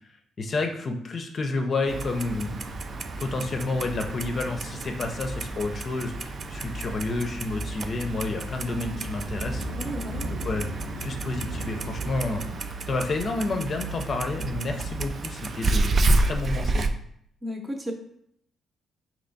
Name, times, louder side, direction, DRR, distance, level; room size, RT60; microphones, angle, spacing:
voice 1, 0.4-2.6 3.2-9.7 10.4-10.7 11.0-16.9, left 3 dB, 45° left, 4 dB, 0.5 m, -30 dB
Clock, 1.9-16.9, right 2 dB, 45° right, 0.3 m, -30 dB
sound 1, 1.9-12.6, right 1 dB, 70° right, 1.0 m, -38 dB
voice 2, 9.8-10.3 17.4-17.9, equal, 20° right, 3 dB, 0.8 m, -33 dB
3.3 x 2.9 x 4.0 m, 0.71 s
cardioid pair, 90°, 0 cm